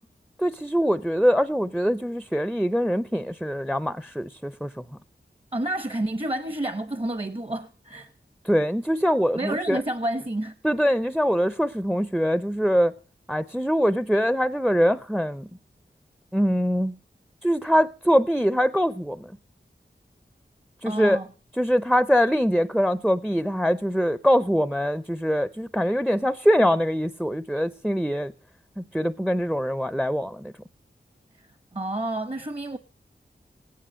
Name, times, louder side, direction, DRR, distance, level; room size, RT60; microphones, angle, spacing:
voice 1, 0.4-4.8 8.4-9.8 10.6-12.9 13.3-15.5 16.3-17.0 17.4-19.3 20.8-21.2 21.6-28.3 28.8-30.5, equal, ahead, 0.7 m, -23 dB
voice 2, 5.5-8.1 9.3-10.5 20.8-21.3 31.4-32.8, right 1 dB, 30° right, 1.0 m, -29 dB
16.0 x 10.5 x 6.3 m
wide cardioid pair, 60°, 19 cm